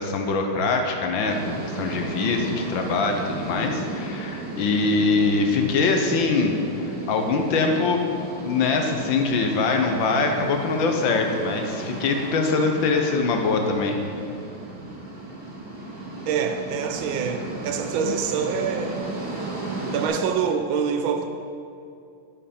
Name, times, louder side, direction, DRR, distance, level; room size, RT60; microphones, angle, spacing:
voice 1, 0.0-6.5 6.8-14.0, left 4 dB, 70° left, 1.5 m, -23 dB
sound 1, 1.2-20.1, right 2 dB, 50° right, 2.1 m, -34 dB
voice 2, 16.3-19.1 19.9-21.3, right 6 dB, 75° right, 1.3 m, -26 dB
10.5 x 7.6 x 4.3 m
omnidirectional pair, 2.4 m